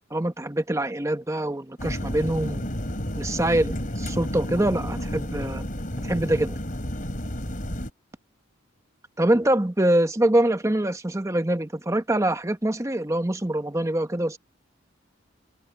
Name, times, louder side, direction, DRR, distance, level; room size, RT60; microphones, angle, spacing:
voice 1, 0.1-2.7 3.2-5.6 6.0-6.6 9.2-14.4, right 1 dB, 15° right, 1.0 m, -24 dB
sound 1, 1.8-7.9, equal, 45° left, 4.9 m, -31 dB
head